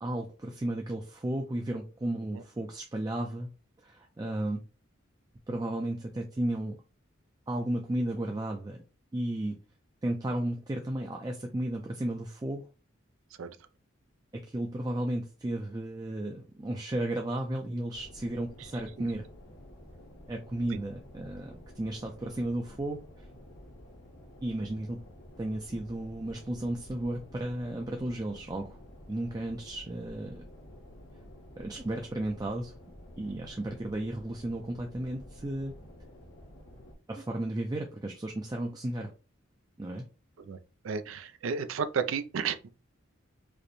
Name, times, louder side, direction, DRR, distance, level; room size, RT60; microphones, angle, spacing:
voice 1, 0.0-3.5 3.8-4.6 5.5-6.8 7.5-8.8 9.1-9.6 10.0-12.7 14.3-19.2 20.3-23.0 24.4-25.0 25.4-28.8 29.1-30.5 31.6-32.7 33.2-35.8 37.1-39.1 39.8-40.1, right 1 dB, 20° right, 0.4 m, -34 dB
sound 1, 17.9-37.0, equal, 70° left, 1.0 m, -51 dB
voice 2, 40.8-42.7, right 6 dB, 85° right, 0.4 m, -32 dB
4.9 x 2.1 x 3.0 m
head